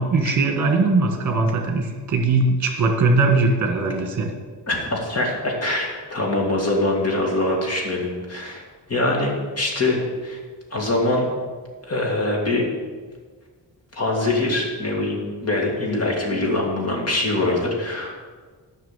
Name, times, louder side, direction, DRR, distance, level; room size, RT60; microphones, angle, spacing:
voice 1, 0.0-4.3, right 3 dB, 40° right, 3 dB, 1.7 m, -20 dB
voice 2, 4.7-8.6 8.9-10.4 10.7-11.3 11.8-12.6 13.9-18.1, left 2 dB, 35° left, -1 dB, 2.2 m, -23 dB
10.5 x 6.1 x 7.4 m, 1.5 s
wide cardioid pair, 165°, 42 cm